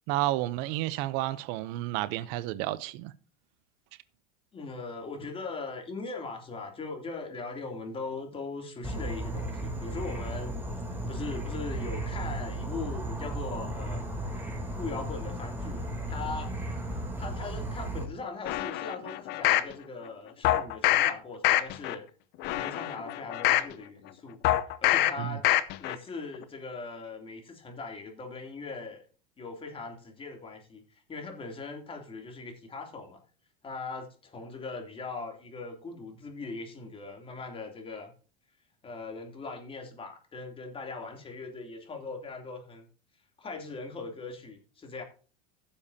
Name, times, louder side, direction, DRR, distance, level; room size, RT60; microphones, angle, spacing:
voice 1, 0.1-3.1 25.2-25.4, right 16 dB, 60° right, 0.7 m, -31 dB
voice 2, 4.5-10.5 11.1-14.1 14.7-16.5 17.2-22.0 22.5-24.4 24.8-25.5 25.8-29.0 29.4-33.2 33.6-38.1 38.8-42.8 43.4-45.0, left 3 dB, 25° left, 3.0 m, -40 dB
Insect / Frog, 8.8-18.0, right 1 dB, 10° right, 3.0 m, -35 dB
sound 1, 18.5-19.7 20.4-21.1 21.4-21.9 22.4-23.7 24.4-25.1 25.4-25.9 26.3-26.4, left 14 dB, 55° left, 0.8 m, -25 dB
16.0 x 7.1 x 2.8 m
hypercardioid pair, 95°, 21 cm